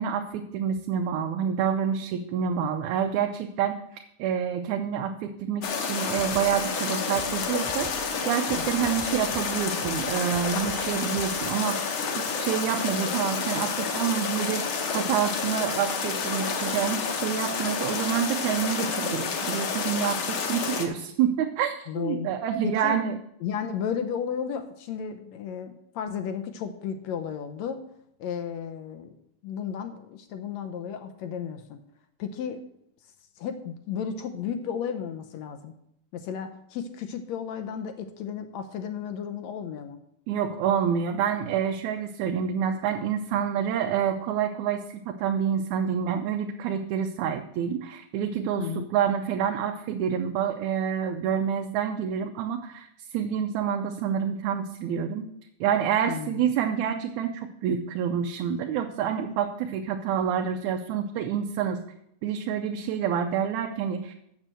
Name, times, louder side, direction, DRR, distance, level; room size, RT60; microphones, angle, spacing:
voice 1, 0.0-7.9 8.2-23.2 40.3-52.9 53.1-55.3 55.6-61.8 62.2-64.1, right 8 dB, 85° right, 5 dB, 2.1 m, -28 dB
sound 1, 5.6-20.9, left 5 dB, 55° left, 1.6 m, -29 dB
sound 2, 6.1-11.5, right 2 dB, 40° right, 1.4 m, -45 dB
voice 2, 21.9-22.3 22.6-23.0 23.4-27.8 28.2-29.1 29.4-31.8 32.2-32.6 33.4-35.7 36.1-40.0 48.6-48.9 56.1-56.5, left 7 dB, 75° left, 8 dB, 1.9 m, -33 dB
7.3 x 6.6 x 7.5 m, 0.76 s
omnidirectional pair, 3.3 m